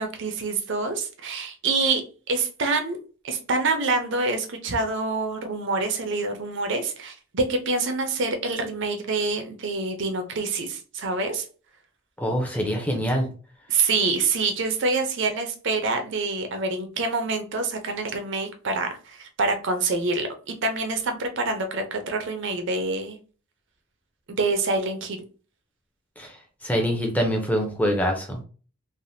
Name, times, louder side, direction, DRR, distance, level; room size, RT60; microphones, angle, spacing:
voice 1, 0.0-3.0 3.2-11.4 13.7-23.2 24.3-25.2, right 3 dB, 55° right, 6 dB, 0.5 m, -26 dB
voice 2, 12.2-13.3 26.2-26.3 26.6-28.4, equal, 5° left, 2 dB, 0.5 m, -24 dB
3.3 x 2.1 x 2.6 m, 0.38 s
head